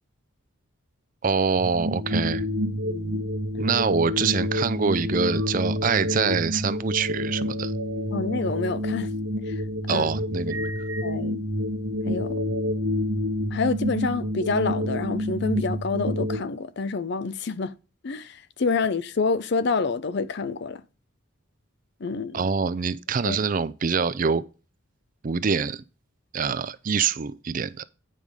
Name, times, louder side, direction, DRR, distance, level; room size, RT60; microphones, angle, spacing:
voice 1, 1.2-2.4 3.6-7.7 9.9-10.7 22.3-24.4 25.2-25.8 26.3-27.8, right 5 dB, 40° right, 0.4 m, -25 dB
sound 1, 1.5-16.4, left 1 dB, 90° right, 1.3 m, -28 dB
voice 2, 2.8-3.2 8.1-9.1 9.9-10.1 11.0-11.4 12.1-12.3 13.5-17.7 18.0-20.8 22.0-22.5 23.3-23.4, left 4 dB, 55° left, 0.5 m, -27 dB
9.3 x 5.2 x 4.8 m
head